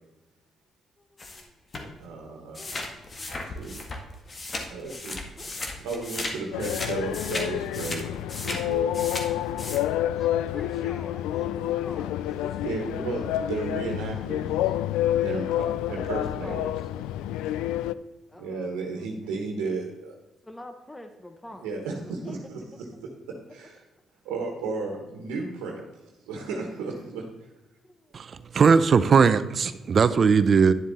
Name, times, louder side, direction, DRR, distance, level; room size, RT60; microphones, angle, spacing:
sound 1, 1.2-1.4 1.7-1.9 2.5-6.3 6.6-9.8, left 2 dB, 40° left, 1.9 m, -35 dB
voice 1, 2.0-2.6 3.4-3.8 4.7-5.5 5.8-8.1 8.4-9.1 12.6-14.5 15.2-16.8 18.4-20.1 21.5-23.1 23.5-23.8 24.2-25.8 26.2-27.2, right 3 dB, 85° right, 0 dB, 1.4 m, -34 dB
voice 2, 5.4-5.7 9.6-12.6 13.0-13.1 16.4-16.8 18.3-18.7 20.5-21.7 22.2-22.4, left 1 dB, 15° left, 7 dB, 1.1 m, -44 dB
sound 2, 6.5-17.9, left 12 dB, 85° left, 0.3 m, -28 dB
voice 3, 28.5-30.7, right 5 dB, 50° right, 13 dB, 0.6 m, -19 dB
10.5 x 7.3 x 4.2 m, 1.1 s
supercardioid pair, 55°, 0 cm